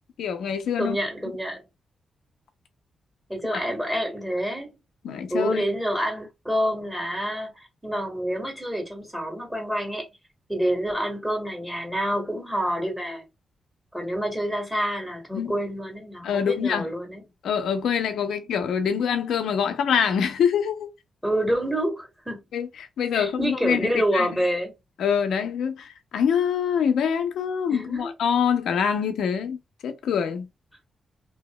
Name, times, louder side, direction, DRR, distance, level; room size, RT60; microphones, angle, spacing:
voice 1, 0.2-1.0 3.5-3.6 5.0-5.6 15.3-15.5 16.2-16.9 17.4-20.9 22.5-24.4 25.0-30.5, left 7 dB, 85° left, 0.6 m, -25 dB
voice 2, 0.8-1.7 3.3-4.8 5.3-7.5 7.8-10.1 10.5-13.3 13.9-17.2 21.2-22.4 23.1-24.7 27.7-28.1, equal, 10° right, 1.6 m, -27 dB
2.8 x 2.8 x 2.2 m
cardioid pair, 75°, 0 cm